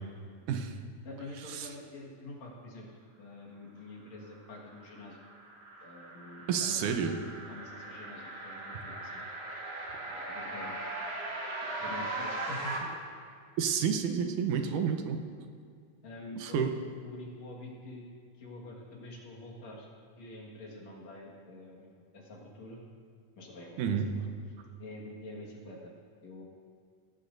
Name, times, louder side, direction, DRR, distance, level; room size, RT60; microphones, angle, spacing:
voice 1, 1.0-2.9 3.2-5.2 5.8-6.8 7.5-9.2 10.0-10.8 11.6-12.9 16.0-16.7 17.0-18.1 18.4-19.9 20.2-22.8 23.4-24.1 24.8-25.9 26.2-26.4, left 2 dB, 60° left, -2 dB, 2.9 m, -46 dB
sound 1, 4.4-12.8, right 2 dB, 45° right, 2.5 m, -39 dB
voice 2, 6.5-7.1 13.6-15.2 16.4-16.7 23.8-24.1, right 7 dB, 80° right, 5 dB, 2.4 m, -30 dB
17.5 x 15.5 x 2.6 m, 2.2 s
omnidirectional pair, 3.6 m